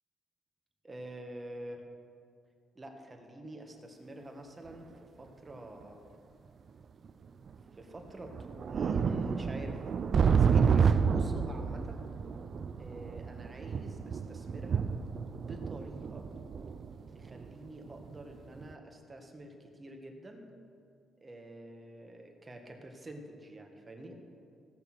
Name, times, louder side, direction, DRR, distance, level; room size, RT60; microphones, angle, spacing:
voice 1, 0.8-1.8 2.8-6.1 7.7-9.8 10.3-12.1 12.8-14.9 15.3-16.3 17.1-20.5 21.2-24.2, right 1 dB, 25° right, 3 dB, 1.9 m, -47 dB
sound 1, 4.7-4.8 5.8-5.9 7.0-7.1 7.5-7.6 8.1-18.2 18.6-18.7, right 6 dB, 50° right, 0.5 m, -30 dB
16.5 x 6.9 x 6.3 m, 2.3 s
cardioid pair, 90°, 0 cm